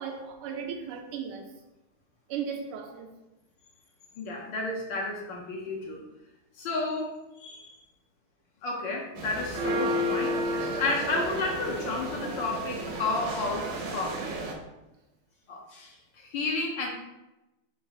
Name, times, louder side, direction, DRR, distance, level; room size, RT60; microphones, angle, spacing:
voice 1, 0.0-1.5 2.3-3.1, right 7 dB, 85° right, 1.5 m, -36 dB
voice 2, 4.2-6.0 6.6-7.8 8.6-10.4 10.8-14.2 15.5-16.9, left 3 dB, 70° left, 1.3 m, -32 dB
sound 1, 9.2-14.5, equal, 70° right, 1.2 m, -32 dB
4.1 x 2.4 x 4.6 m
omnidirectional pair, 2.4 m